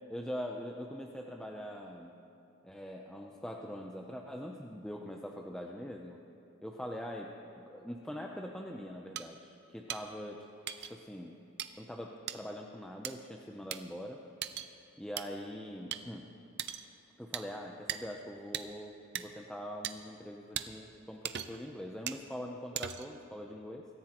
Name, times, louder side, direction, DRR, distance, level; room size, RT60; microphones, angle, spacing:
voice 1, 0.1-2.1 2.6-6.2 6.6-10.5 10.9-11.4 11.8-14.2 15.0-16.2 17.2-23.9, equal, 5° left, 0 dB, 0.5 m, -43 dB
sound 1, 9.2-9.3 9.9-10.0 10.7-10.9 11.6-11.7 12.3-12.4 13.0-13.1 13.7-13.8 14.4-14.7 15.2-15.3 15.9-16.0 16.6-16.9 17.3-17.5 17.9-18.0 18.5-18.7 19.2-19.3 19.8-19.9 20.6-20.7 21.2-21.6 22.1-22.2 22.8-23.2, right 10 dB, 50° right, 0.5 m, -38 dB
24.5 x 14.0 x 3.0 m, 2.8 s
head